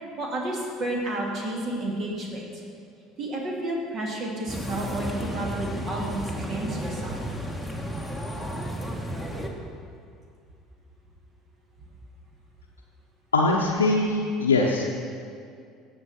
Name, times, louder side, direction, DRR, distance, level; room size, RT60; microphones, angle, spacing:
voice 1, 0.2-2.6 3.2-7.2, right 1 dB, 45° right, -1 dB, 2.4 m, -31 dB
sound 1, 4.5-9.5, equal, 5° right, 1.5 m, -33 dB
voice 2, 13.3-14.8, left 3 dB, 90° left, -3 dB, 0.7 m, -22 dB
16.0 x 6.5 x 4.3 m, 2.3 s
hypercardioid pair, 65°, 0 cm